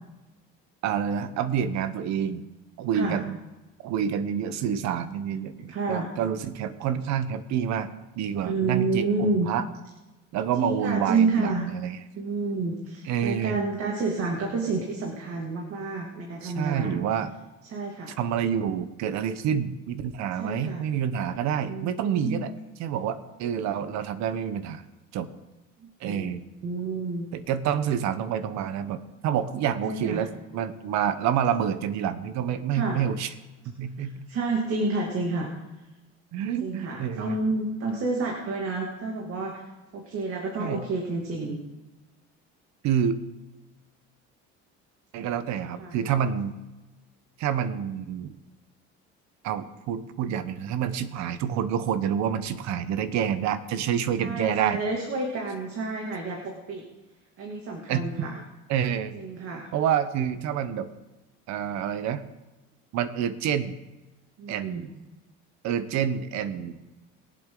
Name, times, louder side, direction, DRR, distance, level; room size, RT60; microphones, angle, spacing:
voice 1, 0.8-2.4 2.8-3.4 3.8-7.9 8.2-9.6 10.3-12.0 13.0-13.6 16.4-17.3 18.2-22.5 22.8-24.8 25.1-25.3 26.0-26.4 27.3-33.3 33.7-34.3 36.3-37.4 40.6-40.8 42.8-43.2 45.1-46.5 47.4-48.3 49.4-54.8 57.9-58.3 58.7-59.2 59.7-60.9 61.5-62.2 62.9-63.8 64.5-64.9 65.6-66.8, right 8 dB, 70° right, 12 dB, 1.1 m, -28 dB
voice 2, 5.7-6.1 8.4-9.5 10.6-11.7 12.1-17.0 17.7-18.2 20.3-20.9 21.7-22.4 25.8-26.3 26.6-27.3 29.8-30.2 32.7-33.0 34.0-35.5 36.6-39.6 39.9-41.6 45.8-45.9 54.2-56.8 57.4-58.4 59.1-59.7 64.4-64.9, right 3 dB, 50° right, -1 dB, 2.6 m, -29 dB
22.0 x 7.8 x 3.9 m, 1.1 s
cardioid pair, 105°, 29 cm